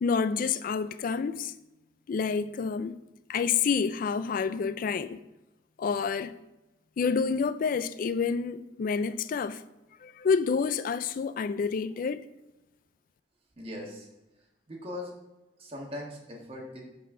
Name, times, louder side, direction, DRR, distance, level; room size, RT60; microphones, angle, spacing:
voice 1, 0.0-1.5 2.1-3.0 3.3-5.2 5.8-6.3 7.0-9.6 10.0-12.2, left 5 dB, 50° left, 0.3 m, -28 dB
voice 2, 13.6-14.1 14.7-15.1 15.6-16.8, left 1 dB, 35° right, 1.6 m, -39 dB
11.0 x 4.0 x 3.7 m
head